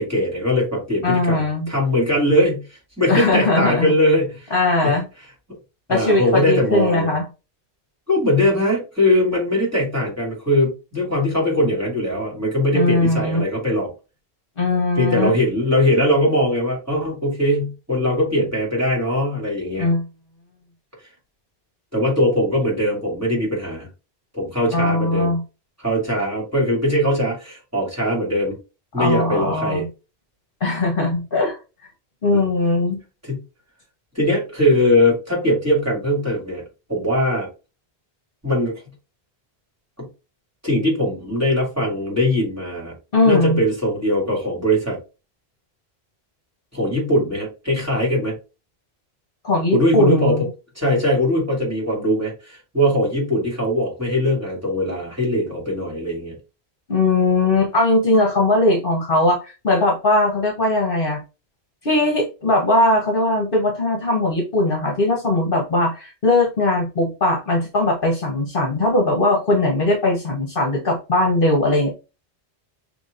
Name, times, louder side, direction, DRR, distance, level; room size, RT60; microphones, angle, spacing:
voice 1, 0.0-2.6 3.0-4.5 4.8-5.0 5.9-7.1 8.1-13.9 14.9-19.9 21.9-23.9 24.3-25.3 25.8-28.6 28.9-29.8 32.3-32.4 33.2-33.4 34.1-36.6 36.9-37.5 38.4-38.7 40.0-40.1 40.6-42.9 43.2-45.0 46.7-48.3 49.7-50.5 50.7-56.3, left 1 dB, 15° right, -4 dB, 2.6 m, -20 dB
voice 2, 1.0-1.7 3.1-3.9 4.5-5.0 5.9-7.3 12.7-13.4 14.6-15.3 19.8-20.1 24.7-25.4 29.0-29.9 30.6-31.6 32.2-33.0 43.1-43.6 49.4-50.5 56.9-61.2 61.8-71.9, left 2 dB, 55° left, 0 dB, 1.4 m, -19 dB
6.0 x 3.2 x 2.6 m, 0.30 s
omnidirectional pair, 1.1 m